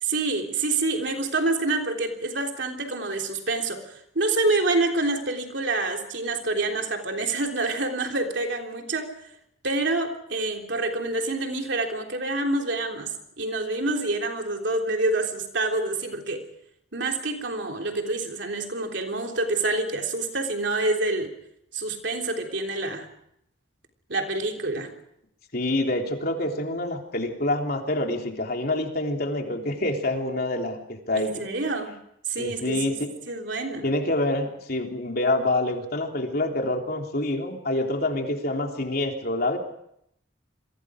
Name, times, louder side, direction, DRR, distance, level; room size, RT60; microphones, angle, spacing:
voice 1, 0.0-9.2 9.6-16.5 16.9-21.3 21.7-23.1 24.1-24.9 31.1-32.0 32.3-33.0 33.3-33.9, right 2 dB, 65° right, 3 dB, 3.4 m, -27 dB
voice 2, 25.5-31.5 32.4-33.1 33.8-39.6, left 2 dB, 50° left, 2 dB, 3.4 m, -27 dB
28.5 x 23.0 x 5.1 m, 0.74 s
head